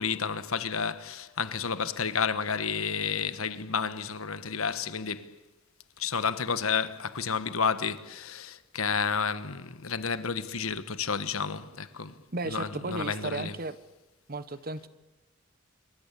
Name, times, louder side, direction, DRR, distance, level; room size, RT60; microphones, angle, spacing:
voice 1, 0.0-5.3 6.0-12.2 12.4-13.5, left 6 dB, 90° left, 1.4 m, -31 dB
voice 2, 12.3-13.8 14.3-14.9, right 2 dB, 45° right, 1.1 m, -34 dB
26.0 x 23.0 x 8.5 m
head